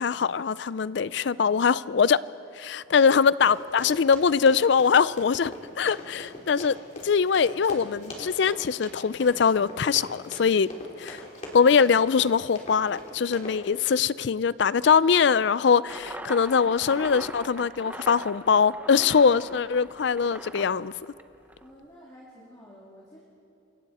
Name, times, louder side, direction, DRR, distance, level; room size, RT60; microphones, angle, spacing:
voice 1, 0.0-2.2 2.6-6.8 7.0-10.7 11.0-11.2 11.5-20.9, left 6 dB, 60° left, 0.4 m, -22 dB
Run, 3.4-13.6, left 1 dB, 35° left, 3.2 m, -42 dB
sound 1, 15.9-21.7, right 1 dB, 10° right, 0.6 m, -41 dB
voice 2, 21.6-23.2, equal, 20° left, 2.7 m, -50 dB
28.0 x 23.5 x 4.2 m
head